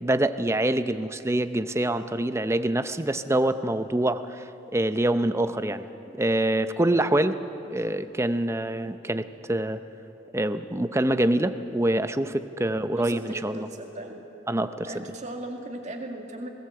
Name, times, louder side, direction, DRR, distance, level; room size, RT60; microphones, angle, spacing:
voice 1, 0.0-4.4 4.7-5.8 6.2-7.4 7.7-9.8 10.3-13.7 14.5-15.0, right 1 dB, 15° right, 10 dB, 0.6 m, -25 dB
voice 2, 12.6-14.2 14.9-16.5, right 1 dB, 40° right, 2 dB, 2.1 m, -38 dB
21.0 x 18.0 x 7.8 m, 3.0 s
head